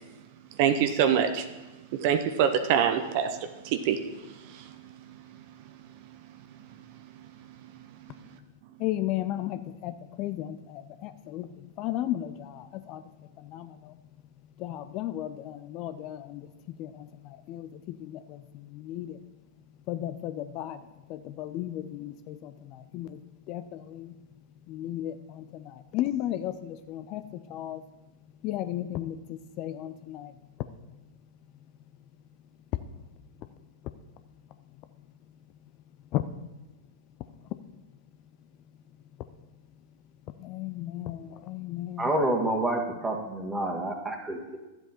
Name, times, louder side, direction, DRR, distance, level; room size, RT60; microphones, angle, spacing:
voice 1, 0.6-1.4 2.0-3.3 3.7-4.0, right 8 dB, 45° right, 0.7 m, -24 dB
voice 2, 8.8-13.0 13.4-13.9 14.6-16.5 16.8-19.2 19.9-20.8 21.1-23.2 23.5-24.1 24.7-27.8 28.4-30.3 36.1-36.2 40.4-42.1, left 13 dB, 40° left, 0.4 m, -35 dB
voice 3, 42.0-44.6, right 1 dB, 10° right, 1.7 m, -28 dB
12.0 x 7.8 x 4.3 m
figure-of-eight pair, 95°, 0 cm